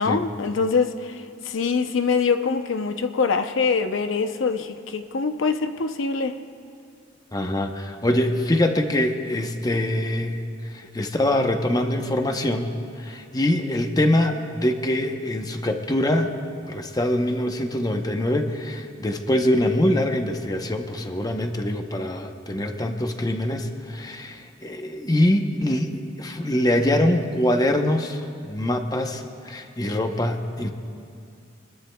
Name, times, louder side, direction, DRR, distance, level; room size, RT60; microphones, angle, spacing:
voice 1, 0.0-6.4, left 5 dB, 85° left, 8 dB, 0.7 m, -24 dB
voice 2, 7.3-16.3 16.7-30.7, left 1 dB, 20° left, 5 dB, 0.8 m, -24 dB
25.5 x 21.0 x 2.3 m, 2.3 s
head